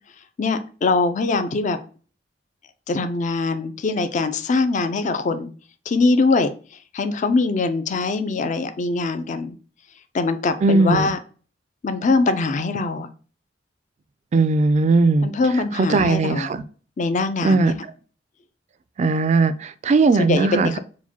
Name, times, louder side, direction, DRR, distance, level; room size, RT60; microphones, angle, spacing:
voice 1, 0.4-1.8 2.9-5.5 5.9-6.5 6.9-9.6 10.1-11.2 11.8-13.1 15.2-16.5 17.0-17.7 20.3-20.8, left 3 dB, 40° left, 9 dB, 0.4 m, -22 dB
voice 2, 10.6-11.1 14.3-15.3 15.5-16.6 17.4-17.8 19.0-20.8, right 3 dB, 40° right, 13 dB, 0.3 m, -18 dB
4.6 x 2.2 x 4.1 m, 0.39 s
head